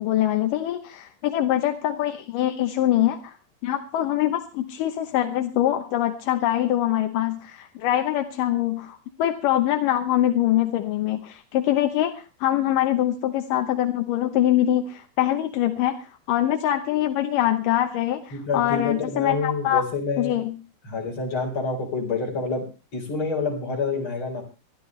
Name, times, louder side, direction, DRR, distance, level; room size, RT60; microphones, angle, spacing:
voice 1, 0.0-3.4 3.6-19.8 20.2-20.6, left 12 dB, 80° left, 6 dB, 2.6 m, -24 dB
voice 2, 18.3-20.3 20.8-22.6 22.9-24.4, left 4 dB, 35° left, 2 dB, 5.1 m, -27 dB
22.0 x 13.5 x 3.2 m, 0.31 s
omnidirectional pair, 3.8 m